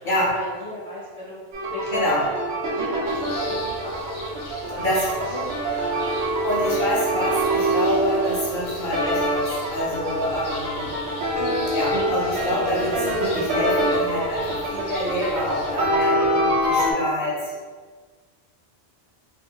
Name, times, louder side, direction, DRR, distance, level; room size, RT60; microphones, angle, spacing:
voice 1, 0.0-1.4 1.7-2.3 2.7-4.2 4.7-4.9 5.3-6.1 6.7-6.9, equal, 45° right, -8 dB, 1.1 m, -36 dB
sound 1, 1.5-16.9, right 1 dB, 80° right, 1.0 m, -25 dB
sound 2, 3.0-15.8, left 2 dB, 80° left, 1.0 m, -38 dB
voice 2, 6.4-10.9 11.7-17.4, left 1 dB, 55° left, -7 dB, 0.7 m, -26 dB
2.7 x 2.4 x 2.7 m, 1.5 s
omnidirectional pair, 1.1 m